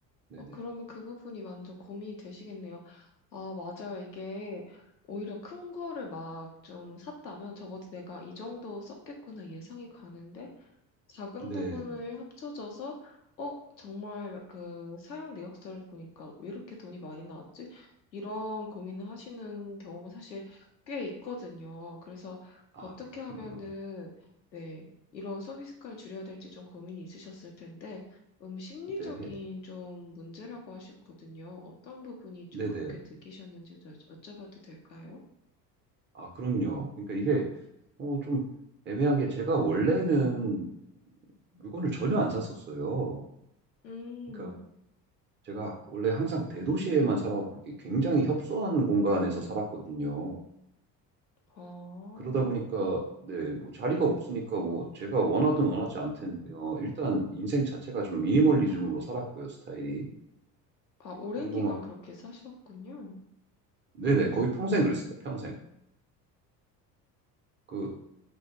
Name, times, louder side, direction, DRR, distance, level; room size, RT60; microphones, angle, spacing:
voice 1, 0.5-3.0 3.3-4.8 5.1-10.5 11.1-17.9 18.1-20.6 20.9-24.1 24.5-24.8 25.1-28.0 28.4-30.9 31.2-33.0 33.2-34.0 34.2-35.2 43.8-44.6 51.6-52.5 61.0-63.2, left 3 dB, 90° left, 0 dB, 0.6 m, -41 dB
voice 2, 11.4-11.8 22.7-22.9 29.0-29.3 32.5-33.0 36.1-37.5 38.0-38.4 38.9-40.7 41.5-43.2 44.4-44.5 45.5-50.4 52.2-60.1 61.5-61.7 64.0-65.5 67.7-67.9, right 3 dB, 25° right, 0 dB, 0.5 m, -29 dB
2.3 x 2.2 x 2.9 m, 0.79 s
figure-of-eight pair, 60°, 50 cm